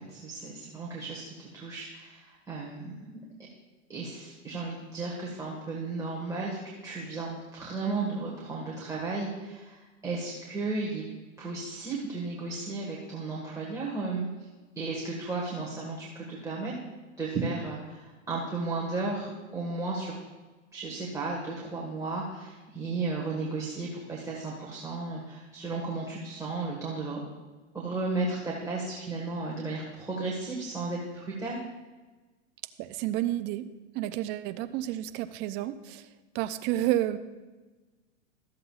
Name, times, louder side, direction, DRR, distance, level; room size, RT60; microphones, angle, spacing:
voice 1, 0.0-3.2 3.9-11.0 11.4-14.3 14.7-16.8 17.2-20.2 20.7-27.2 27.7-31.6, right 3 dB, 10° right, -4 dB, 1.5 m, -34 dB
voice 2, 32.8-33.7 33.9-36.0 36.3-37.2, right 14 dB, 30° right, 12 dB, 0.4 m, -30 dB
13.5 x 7.6 x 2.4 m, 1.2 s
hypercardioid pair, 120°, 38 cm